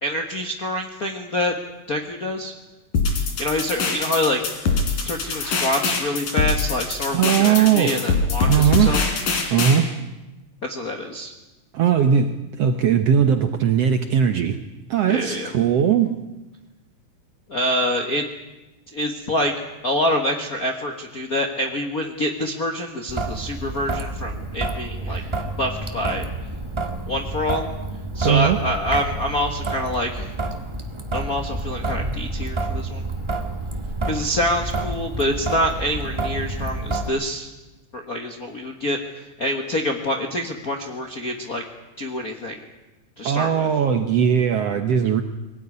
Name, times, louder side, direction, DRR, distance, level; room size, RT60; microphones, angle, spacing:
voice 1, 0.0-1.5 1.9-2.5 3.4-4.7 5.0-9.0 10.6-11.3 15.1-15.5 17.5-18.3 18.9-19.5 19.8-25.2 25.6-26.3 27.1-27.7 28.1-30.3 31.1-33.0 34.1-37.5 37.9-41.6 42.0-42.6 43.2-43.7, left 1 dB, 50° left, 2 dB, 1.0 m, -26 dB
sound 1, 2.9-9.8, left 4 dB, 70° left, 4.6 m, -23 dB
voice 2, 7.1-8.1 8.5-9.0 9.5-9.9 11.7-14.6 14.9-16.2 25.1-25.4 28.2-28.6 43.2-45.2, right 8 dB, 65° right, 8 dB, 1.6 m, -19 dB
Traffic noise roadway noise / Drip / Trickle dribble, 23.1-37.1, right 2 dB, 20° right, 0.8 m, -29 dB
21.5 x 18.5 x 9.7 m, 1.1 s
omnidirectional pair, 3.9 m